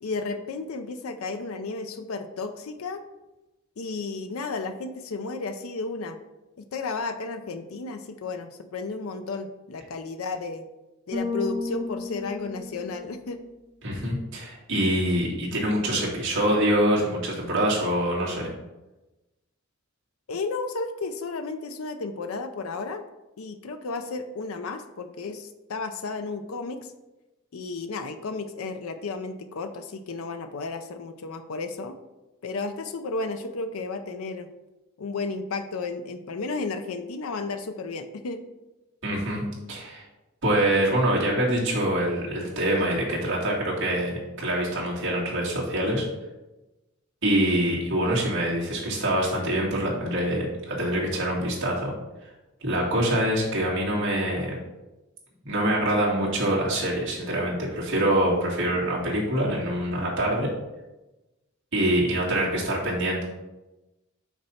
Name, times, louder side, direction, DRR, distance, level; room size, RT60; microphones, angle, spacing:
voice 1, 0.0-3.0 3.8-6.2 6.6-10.7 11.1-13.4 20.3-23.1 23.4-26.9 27.5-32.0 32.4-34.5 35.0-38.4, left 3 dB, 85° left, 8 dB, 0.5 m, -33 dB
Bass guitar, 11.1-13.4, left 3 dB, 25° right, 1.4 m, -33 dB
voice 2, 13.8-18.5 39.0-40.0 40.4-46.0 47.2-51.9 52.6-54.6 55.4-60.5 61.7-63.2, right 1 dB, 65° right, -4 dB, 2.2 m, -25 dB
5.9 x 4.2 x 5.6 m, 1.0 s
head